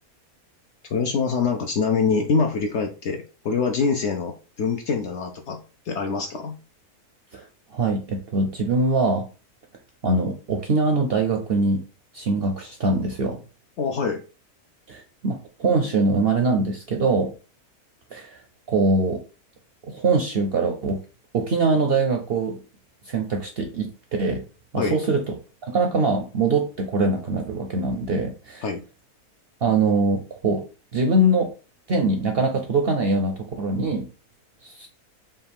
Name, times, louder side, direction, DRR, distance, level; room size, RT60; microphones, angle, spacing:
voice 1, 0.9-5.6 5.9-6.5 13.8-14.2 24.8-25.0 28.6-28.8, left 5 dB, 65° left, 4 dB, 0.7 m, -24 dB
voice 2, 7.7-9.3 10.0-11.8 12.1-13.4 14.9-17.3 18.1-18.4 18.7-19.2 19.9-21.0 21.3-22.6 23.1-23.9 24.2-24.4 24.7-25.2 25.6-28.6 29.6-30.6 30.9-31.5 31.9-34.1 34.6-34.9, right 3 dB, 60° right, 3 dB, 0.6 m, -23 dB
5.5 x 2.3 x 3.4 m, 0.34 s
omnidirectional pair, 1.6 m